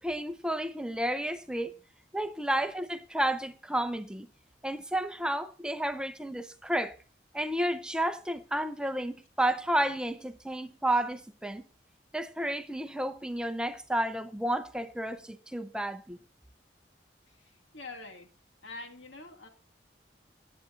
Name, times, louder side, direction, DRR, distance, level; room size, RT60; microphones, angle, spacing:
voice 1, 0.0-1.7 2.1-4.3 4.6-7.0 7.3-11.6 12.1-16.2, right 1 dB, 5° right, 0.6 m, -31 dB
voice 2, 17.3-18.3 18.6-19.5, left 3 dB, 90° left, 2.0 m, -45 dB
18.0 x 8.7 x 2.5 m
head